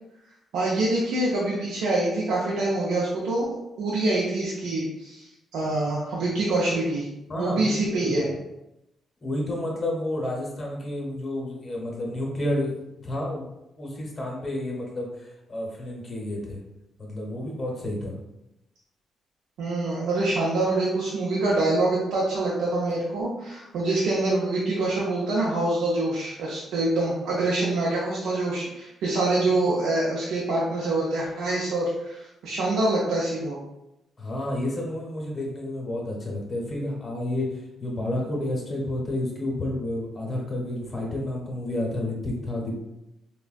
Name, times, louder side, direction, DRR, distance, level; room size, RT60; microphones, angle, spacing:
voice 1, 0.5-3.5 3.8-7.1 7.4-8.3 19.6-33.6, right 2 dB, 85° right, -5 dB, 0.5 m, -25 dB
voice 2, 7.3-8.3 9.2-13.5 13.8-16.6 17.0-18.2 34.2-42.7, left 1 dB, 35° left, -2 dB, 0.8 m, -30 dB
3.3 x 2.1 x 2.4 m, 0.88 s
cardioid pair, 80°, 0 cm